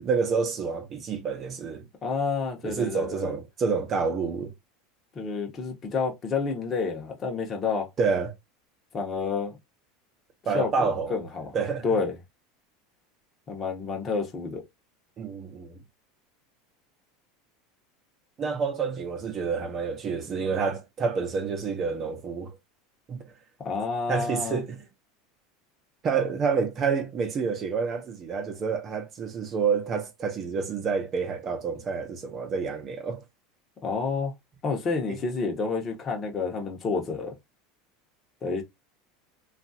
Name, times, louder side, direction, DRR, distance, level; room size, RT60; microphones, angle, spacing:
voice 1, 0.0-1.9 2.6-4.5 8.0-8.3 10.5-11.2 11.5-11.8 15.2-15.8 18.4-22.6 23.1-23.2 24.1-24.8 26.0-33.2 35.1-35.2, right 5 dB, 35° right, 0.8 m, -28 dB
voice 2, 2.0-3.3 5.1-7.9 8.9-9.6 10.5-11.5 11.8-12.2 13.5-14.6 23.6-24.6 33.8-34.3 34.6-37.3 38.4-38.6, left 4 dB, 30° left, 0.9 m, -29 dB
2.9 x 2.4 x 2.7 m
supercardioid pair, 130°, 0 cm